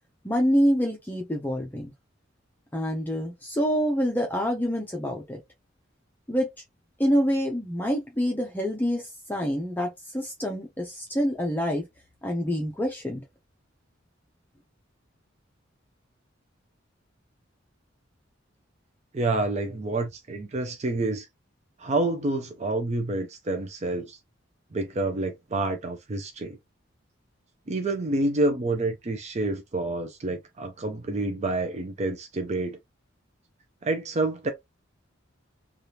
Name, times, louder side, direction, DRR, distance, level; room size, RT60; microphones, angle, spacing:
voice 1, 0.2-1.9 2.7-5.4 6.3-6.5 7.0-11.9 12.2-13.2, equal, 10° left, 0.6 m, -26 dB
voice 2, 19.1-21.3 21.8-24.2 24.7-26.6 27.7-32.8 33.8-34.5, right 2 dB, 35° right, 0.5 m, -28 dB
3.3 x 2.4 x 2.8 m
head